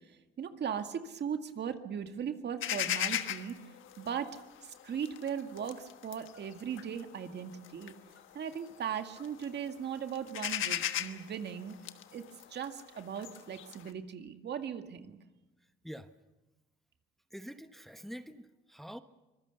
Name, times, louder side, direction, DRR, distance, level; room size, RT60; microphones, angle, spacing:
voice 1, 0.1-3.6 4.0-4.4 4.6-8.0 8.3-11.8 12.1-12.2 12.5-15.2, right 8 dB, 60° right, 7 dB, 2.0 m, -38 dB
sound 1, 2.6-8.8 9.2-9.7 10.0-13.9, left 12 dB, 80° left, 1.4 m, -37 dB
voice 2, 15.6-16.1 17.3-19.0, equal, ahead, 9 dB, 1.1 m, -46 dB
25.0 x 21.0 x 6.9 m, 1.1 s
cardioid pair, 90°, 20 cm